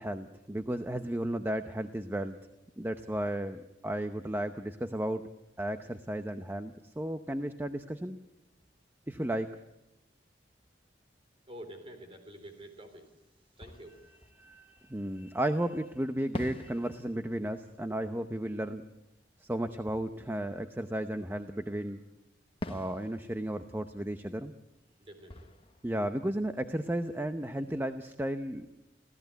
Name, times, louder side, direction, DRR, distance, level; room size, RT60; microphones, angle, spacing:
voice 1, 0.0-2.4 2.8-5.2 5.6-8.2 9.1-9.5 14.4-18.8 19.4-22.0 22.7-24.5 25.8-28.7, right 1 dB, 10° right, 8 dB, 0.7 m, -34 dB
voice 2, 11.5-13.1 13.6-14.1 25.0-25.5, right 1 dB, 30° right, 6 dB, 3.9 m, -48 dB
Fireworks, 13.6-15.5 16.3-21.7 22.6-27.3, left 1 dB, 30° left, 1.2 m, -48 dB
26.0 x 16.5 x 8.1 m, 0.96 s
head